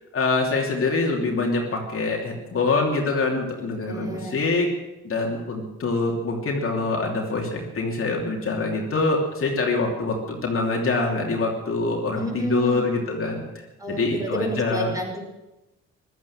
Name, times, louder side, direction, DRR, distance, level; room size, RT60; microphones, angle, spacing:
voice 1, 0.1-4.7 5.0-13.4 13.9-14.9, left 3 dB, 45° left, 0 dB, 3.0 m, -25 dB
voice 2, 3.9-4.4 12.2-12.8 13.8-15.2, right 1 dB, 10° right, 0 dB, 5.2 m, -30 dB
15.5 x 12.5 x 7.3 m, 0.98 s
cardioid pair, 90°, 30 cm